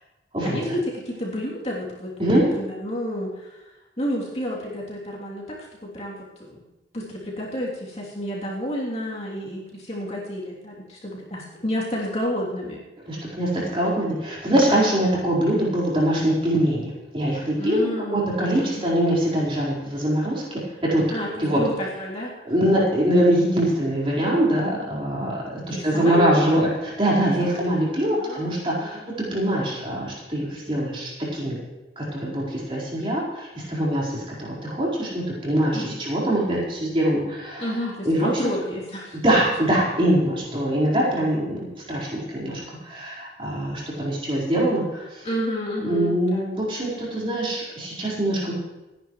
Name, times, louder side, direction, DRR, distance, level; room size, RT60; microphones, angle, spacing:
voice 1, 0.4-2.1 2.6-3.6 4.0-6.6 6.9-12.8 17.6-18.3 18.6-18.9 21.1-22.3 25.7-26.6 27.4-29.1 35.7-36.0 37.6-39.2 39.7-39.8 45.2-46.5, left 1 dB, 35° left, -5 dB, 3.2 m, -30 dB
voice 2, 13.1-21.0 21.4-21.6 22.4-31.6 32.0-37.7 38.0-38.3 39.2-45.3 45.8-48.5, right 1 dB, 30° right, -6 dB, 4.7 m, -23 dB
28.5 x 10.5 x 3.2 m, 1.1 s
head